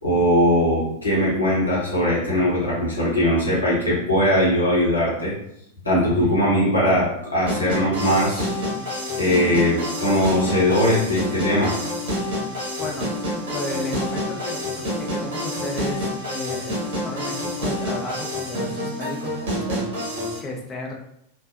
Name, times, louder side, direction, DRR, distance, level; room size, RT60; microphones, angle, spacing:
voice 1, 0.0-5.3 5.8-8.5 9.2-11.8, equal, 80° left, -6 dB, 1.0 m, -20 dB
sound 1, 7.5-20.4, left 1 dB, 55° right, 0.9 m, -28 dB
voice 2, 12.8-13.1 13.5-20.9, left 1 dB, 20° left, -1 dB, 0.6 m, -33 dB
2.5 x 2.1 x 2.4 m, 0.73 s
figure-of-eight pair, 90°, 0 cm